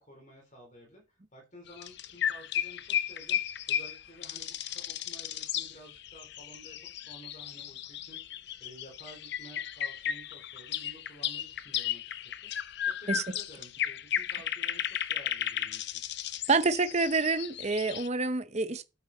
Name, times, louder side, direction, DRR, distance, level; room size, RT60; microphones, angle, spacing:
voice 1, 0.0-16.0, equal, 35° left, 4.0 m, -53 dB
sound 1, 1.7-18.1, left 10 dB, 55° left, 0.6 m, -35 dB
voice 2, 16.5-18.8, right 3 dB, 35° right, 0.8 m, -27 dB
8.9 x 8.6 x 4.2 m
head